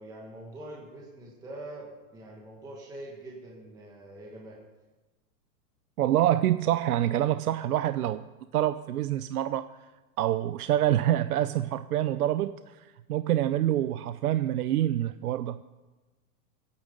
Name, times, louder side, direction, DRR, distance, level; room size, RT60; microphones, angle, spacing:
voice 1, 0.0-4.6, right 1 dB, 10° right, -3 dB, 1.5 m, -44 dB
voice 2, 6.0-8.2 8.5-9.7 10.2-15.6, right 12 dB, 65° right, 13 dB, 0.7 m, -26 dB
23.5 x 9.6 x 5.2 m, 1.2 s
supercardioid pair, 170°, 48 cm